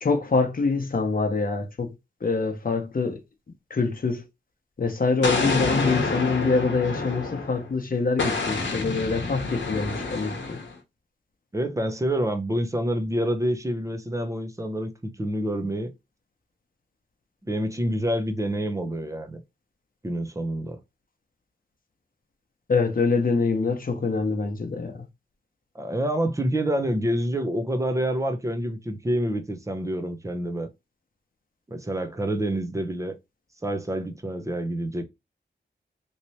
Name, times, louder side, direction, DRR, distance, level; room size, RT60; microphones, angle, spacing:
voice 1, 0.0-1.9 2.2-3.2 3.7-4.2 4.8-10.6 22.7-25.0, left 4 dB, 50° left, 0.8 m, -25 dB
Explosion, 5.2-7.7 8.2-10.7, left 3 dB, 80° left, 0.9 m, -28 dB
voice 2, 11.5-15.9 17.4-19.4 20.0-20.8 25.7-30.7 31.7-33.2 33.6-35.0, right 1 dB, 15° right, 0.6 m, -27 dB
3.1 x 2.9 x 2.8 m
wide cardioid pair, 70°, 19 cm